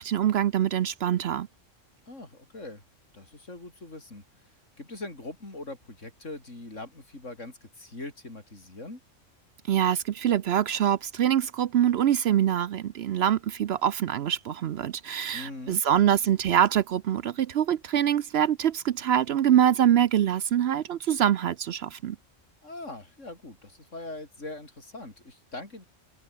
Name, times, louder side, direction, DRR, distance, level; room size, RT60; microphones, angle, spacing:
voice 1, 0.0-1.5 9.7-22.2, right 10 dB, 65° right, 0.8 m, -24 dB
voice 2, 2.1-2.8 3.1-4.2 4.8-9.0 15.3-15.8 22.6-25.8, left 2 dB, 70° left, 5.7 m, -41 dB
omnidirectional pair, 1.3 m